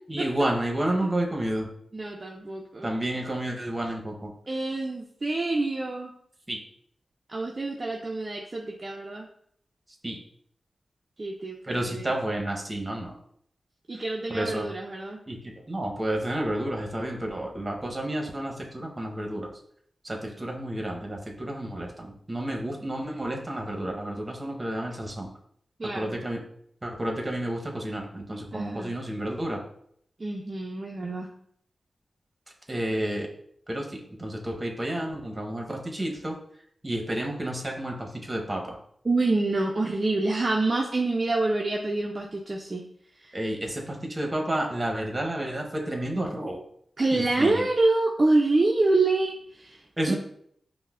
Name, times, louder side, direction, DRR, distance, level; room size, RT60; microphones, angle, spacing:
voice 1, 0.1-1.7 2.8-4.3 6.5-6.6 10.0-10.2 11.7-13.1 14.3-14.7 15.3-19.5 20.0-25.3 25.9-26.4 26.8-29.6 32.7-33.3 33.7-36.4 36.8-38.8 43.3-46.6 47.1-47.6 50.0-50.2, right 1 dB, 30° right, 1 dB, 0.9 m, -30 dB
voice 2, 1.9-2.9 4.5-6.1 7.3-9.3 11.2-12.2 13.9-15.2 20.2-20.5 25.8-26.2 28.5-29.0 30.2-31.3 39.0-42.8 43.2-43.4 47.0-49.8 50.1-50.2, right 2 dB, 45° right, -1 dB, 0.4 m, -27 dB
5.2 x 2.0 x 2.4 m, 0.66 s
cardioid pair, 45°, 0 cm